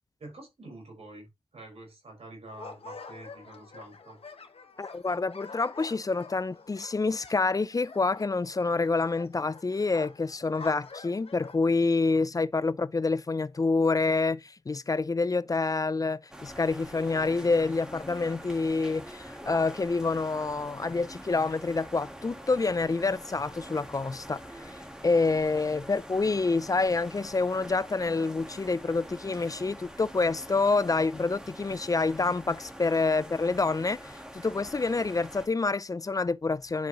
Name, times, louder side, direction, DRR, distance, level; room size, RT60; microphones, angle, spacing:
voice 1, 0.2-4.2, right 2 dB, 85° right, 4.9 m, -47 dB
sound 1, 2.5-11.6, left 4 dB, 75° left, 1.3 m, -47 dB
voice 2, 4.8-24.8 25.0-36.9, left 3 dB, 35° left, 0.4 m, -27 dB
sound 2, 16.3-35.5, equal, 5° right, 1.5 m, -45 dB
10.5 x 5.2 x 3.0 m
wide cardioid pair, 80°, 10 cm